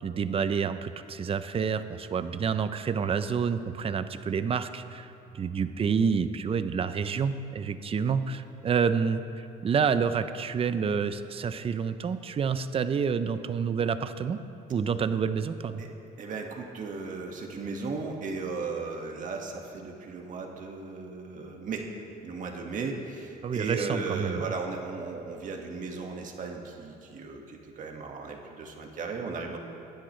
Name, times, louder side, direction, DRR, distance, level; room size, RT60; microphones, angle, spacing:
voice 1, 0.0-9.2 9.6-14.4 14.7-15.8 23.4-24.5, right 6 dB, 35° right, 11 dB, 0.6 m, -28 dB
voice 2, 16.2-21.9 22.2-29.6, right 4 dB, 50° right, 1 dB, 1.8 m, -36 dB
23.5 x 10.0 x 3.3 m, 3.0 s
cardioid pair, 110°, 17 cm